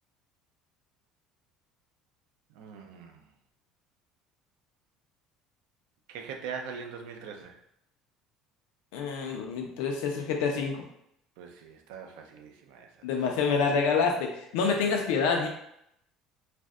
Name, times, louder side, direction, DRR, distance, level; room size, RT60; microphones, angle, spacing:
voice 1, 2.5-3.3 6.1-7.6 11.4-13.3, right 6 dB, 85° right, 3 dB, 0.4 m, -42 dB
voice 2, 8.9-10.8 13.0-15.5, left 5 dB, 85° left, 2 dB, 0.6 m, -27 dB
2.5 x 2.1 x 3.5 m, 0.75 s
cardioid pair, 180°, 0 cm